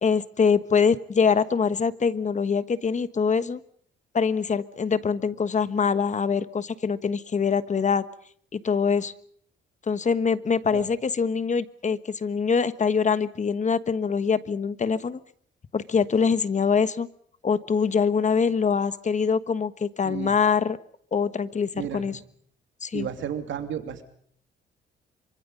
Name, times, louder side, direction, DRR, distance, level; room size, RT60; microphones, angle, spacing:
voice 1, 0.0-3.6 4.1-8.0 8.5-9.1 9.9-15.2 15.7-17.1 17.4-20.8 21.1-22.2 22.8-23.1, left 6 dB, 35° left, 14 dB, 1.3 m, -24 dB
voice 2, 21.7-22.1 22.9-24.0, right 9 dB, 70° right, 7 dB, 2.7 m, -33 dB
25.0 x 24.5 x 5.6 m, 0.62 s
cardioid pair, 90°, 20 cm